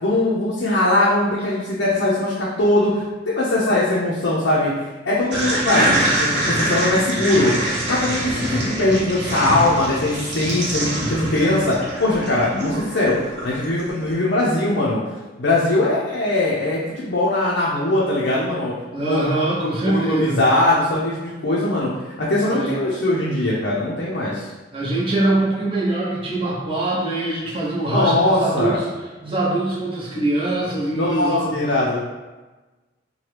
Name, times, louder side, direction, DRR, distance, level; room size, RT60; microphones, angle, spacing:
voice 1, 0.0-4.7 5.0-7.5 7.9-13.1 13.4-15.0 15.4-19.4 19.9-21.9 22.2-24.5 27.9-28.8 30.9-32.0, left 2 dB, 65° left, -6 dB, 0.5 m, -21 dB
sound 1, 5.3-13.9, right 1 dB, 65° right, 0.9 m, -24 dB
voice 2, 18.9-20.4 22.4-22.7 24.7-28.8 29.2-31.5, right 2 dB, 30° right, -6 dB, 0.7 m, -23 dB
2.9 x 2.2 x 3.2 m, 1.2 s
head